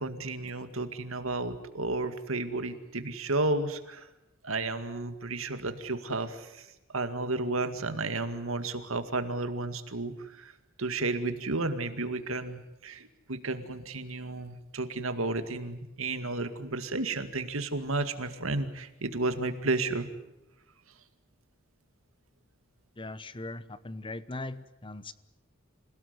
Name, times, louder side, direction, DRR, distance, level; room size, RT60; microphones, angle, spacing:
voice 1, 0.0-4.1 4.4-6.7 6.9-10.5 10.8-20.1, right 2 dB, 85° right, 9 dB, 2.1 m, -32 dB
voice 2, 23.0-25.1, left 2 dB, 25° left, 15 dB, 0.9 m, -39 dB
27.0 x 17.5 x 9.6 m, 0.91 s
head